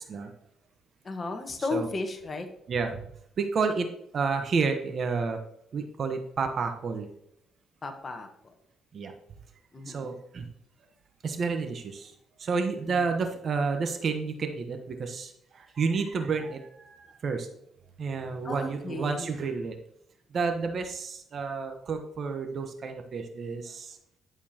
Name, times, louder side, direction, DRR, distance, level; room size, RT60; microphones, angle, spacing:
voice 1, 1.0-2.5 7.8-8.5 9.7-10.1 12.9-13.0 18.4-19.3, left 3 dB, 35° left, 5 dB, 1.3 m, -34 dB
voice 2, 2.7-3.1 3.4-3.9 4.1-5.4 5.7-7.1 8.9-9.1 9.9-10.5 11.2-12.1 12.4-17.5 18.0-19.8 20.3-24.0, right 4 dB, 50° right, 6 dB, 1.0 m, -30 dB
11.0 x 6.9 x 2.9 m, 0.73 s
cardioid pair, 90°, 0 cm